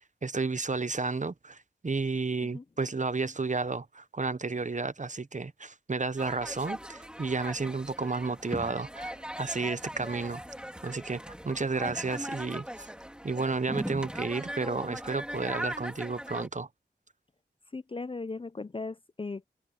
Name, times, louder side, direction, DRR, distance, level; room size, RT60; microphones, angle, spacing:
voice 1, 0.2-10.4 10.8-12.9 13.2-16.7, right 4 dB, 45° right, 0.8 m, -32 dB
sound 1, 6.2-16.5, equal, 5° right, 3.6 m, -39 dB
voice 2, 17.7-19.5, left 3 dB, 30° left, 0.4 m, -37 dB
wide cardioid pair, 50°, 18 cm